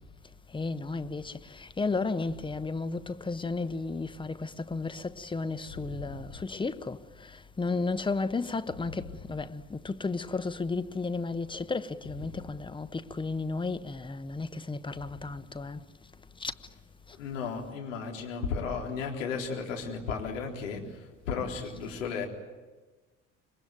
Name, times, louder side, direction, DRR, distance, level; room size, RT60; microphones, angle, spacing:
voice 1, 0.5-7.0 7.6-15.8 16.4-16.5, left 3 dB, 10° left, 1.1 m, -33 dB
voice 2, 5.7-6.3 8.7-8.8 12.0-12.4 14.9-15.0 17.2-22.3, left 5 dB, 70° left, 3.9 m, -35 dB
26.5 x 21.5 x 9.2 m
figure-of-eight pair, 60°, 39 cm